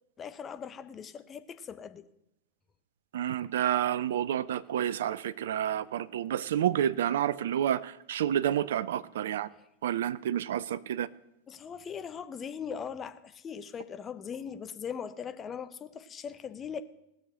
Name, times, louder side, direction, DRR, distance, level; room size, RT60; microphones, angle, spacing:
voice 1, 0.2-2.1 9.5-9.7 11.5-16.8, left 7 dB, 25° left, 0.7 m, -40 dB
voice 2, 3.1-9.5 9.8-11.1, right 10 dB, 60° right, 0.4 m, -29 dB
18.0 x 6.4 x 6.4 m
figure-of-eight pair, 90°, 0 cm